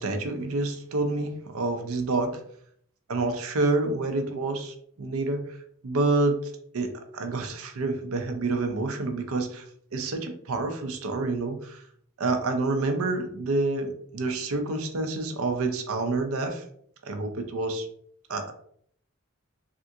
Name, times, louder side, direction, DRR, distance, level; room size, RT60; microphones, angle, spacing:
voice 1, 0.0-2.4 3.1-5.4 5.8-9.6 9.9-11.8 12.2-16.6 17.0-17.9 18.3-18.5, right 3 dB, 80° right, 6 dB, 0.5 m, -28 dB
3.4 x 2.5 x 2.7 m, 0.64 s
head